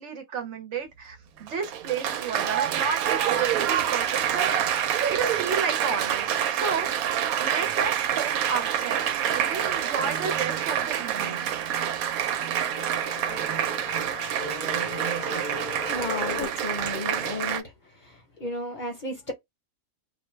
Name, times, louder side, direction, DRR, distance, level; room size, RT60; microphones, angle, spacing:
voice 1, 0.0-6.9 7.4-11.5, right 5 dB, 65° right, 0.9 m, -32 dB
Applause, 1.4-17.6, right 10 dB, 90° right, 1.0 m, -27 dB
sound 1, 12.6-16.5, left 11 dB, 85° left, 1.0 m, -38 dB
voice 2, 15.9-17.7 18.0-19.3, left 2 dB, 40° left, 0.8 m, -33 dB
2.5 x 2.1 x 3.1 m
omnidirectional pair, 1.5 m